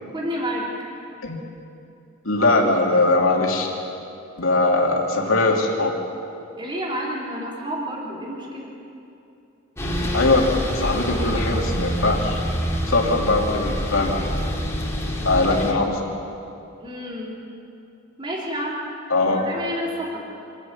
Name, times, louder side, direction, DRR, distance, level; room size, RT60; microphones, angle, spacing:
voice 1, 0.1-0.7 6.6-8.7 16.8-17.4 18.2-18.8 19.2-20.2, equal, 25° right, -4 dB, 3.7 m, -29 dB
voice 2, 2.2-3.7 4.4-5.9 10.1-12.4 12.9-14.3 15.2-16.0 19.1-19.4, left 2 dB, 70° left, 0 dB, 2.9 m, -20 dB
sound 1, 9.8-15.7, equal, 15° left, 2.4 m, -26 dB
26.5 x 11.0 x 9.2 m, 2.7 s
head